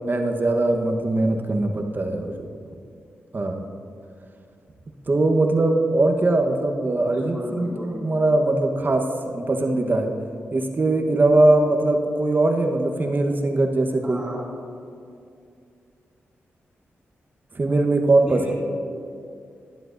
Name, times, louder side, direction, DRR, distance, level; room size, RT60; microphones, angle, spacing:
voice 1, 0.0-2.5 3.3-3.6 5.1-10.1 10.5-14.2 17.5-18.5, right 2 dB, 40° right, 3 dB, 1.1 m, -21 dB
voice 2, 7.1-8.0 14.0-14.5 18.3-18.5, equal, 15° right, -8 dB, 2.4 m, -34 dB
12.5 x 11.0 x 2.6 m, 2.4 s
cardioid pair, 50°, 5 cm